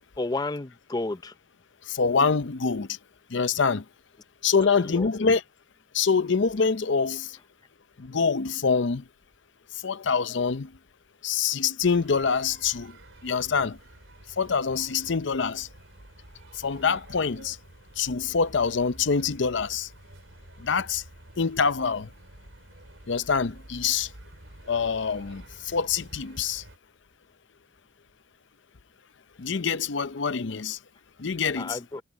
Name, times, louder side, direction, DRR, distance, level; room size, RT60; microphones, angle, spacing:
voice 1, 0.2-1.3 4.6-5.1 31.6-32.0, left 2 dB, 20° left, 0.5 m, -32 dB
voice 2, 1.9-2.9 3.3-3.8 4.4-5.4 5.9-7.3 8.0-9.0 9.8-10.7 11.2-12.9 13.2-13.8 14.4-15.7 16.6-17.6 18.0-19.9 20.6-21.0 21.4-22.1 23.1-24.1 24.7-26.6 29.4-30.8 31.2-31.8, left 5 dB, 65° left, 0.6 m, -25 dB
sound 1, 11.8-26.8, right 1 dB, 75° right, 3.7 m, -49 dB
head